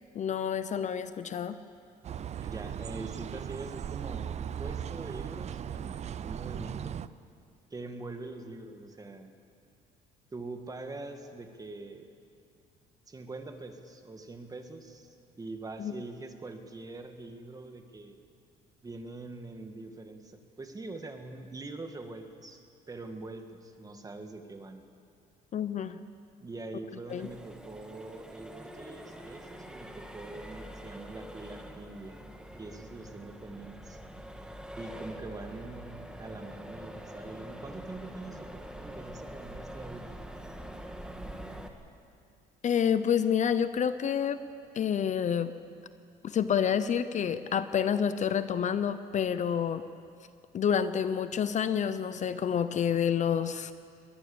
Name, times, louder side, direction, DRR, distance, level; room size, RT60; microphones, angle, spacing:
voice 1, 0.1-1.6 15.8-15.9 25.5-26.0 27.1-27.3 42.6-44.4 44.7-45.5 46.2-49.8 50.5-53.7, left 8 dB, 45° left, 12 dB, 0.8 m, -28 dB
sound 1, 2.0-7.1, right 9 dB, 40° right, 0.6 m, -37 dB
voice 2, 2.4-5.9 6.2-7.0 7.7-9.3 10.3-12.1 13.1-15.1 15.4-18.2 18.8-24.8 26.4-32.2 32.6-34.0 34.8-40.1, right 2 dB, 20° right, 6 dB, 1.9 m, -43 dB
Accelerating revving vroom, 27.1-41.7, equal, 5° right, 1.8 m, -45 dB
22.5 x 18.5 x 7.1 m, 2.4 s
cardioid pair, 110°, 17 cm